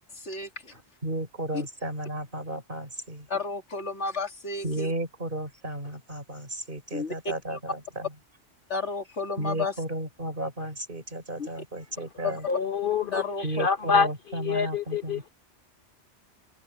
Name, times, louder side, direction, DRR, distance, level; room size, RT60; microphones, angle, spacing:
voice 1, 0.2-0.7 3.3-4.9 6.9-7.1 7.5-7.6 8.7-9.7 11.4-11.5 12.2-12.4 13.1-13.7, left 4 dB, 85° left, 2.6 m, -32 dB
voice 2, 0.7-3.3 4.6-8.1 9.4-12.5 13.4-15.3, right 1 dB, 50° right, 4.3 m, -34 dB
voice 3, 12.5-15.3, left 6 dB, 55° left, 0.9 m, -27 dB
omnidirectional pair, 1.2 m